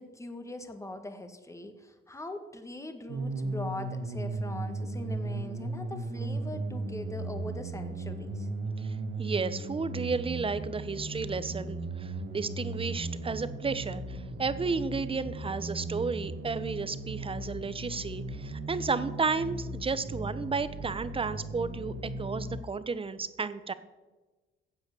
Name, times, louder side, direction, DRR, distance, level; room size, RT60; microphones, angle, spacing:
voice 1, 0.0-8.5, left 1 dB, 15° left, 7 dB, 1.7 m, -41 dB
sound 1, 3.1-22.6, right 2 dB, 75° right, 2.0 m, -36 dB
voice 2, 8.8-23.7, right 4 dB, 25° right, 14 dB, 0.9 m, -33 dB
15.5 x 8.0 x 6.9 m, 1.2 s
cardioid pair, 90°, 20 cm